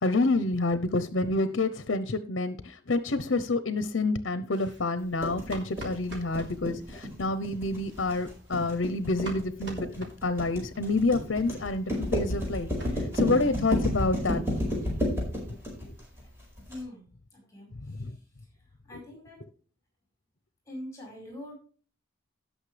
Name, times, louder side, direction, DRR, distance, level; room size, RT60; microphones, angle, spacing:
voice 1, 0.0-2.5 2.9-12.7 13.1-14.4 18.0-18.1, left 2 dB, 70° left, 12 dB, 0.8 m, -28 dB
sound 1, 4.5-6.5 7.7-10.8 11.1-11.2 11.5-11.6 11.8-13.9 14.1-14.3 14.6-14.7 15.0-15.1 15.4-16.2, equal, 60° right, 3.6 m, -46 dB
sound 2, 5.2-16.8, equal, 15° right, 4.9 m, -31 dB
voice 2, 16.7-18.1 18.8-19.4 20.7-21.5, left 1 dB, 15° left, 0 dB, 4.8 m, -44 dB
17.5 x 6.4 x 3.3 m, 0.41 s
head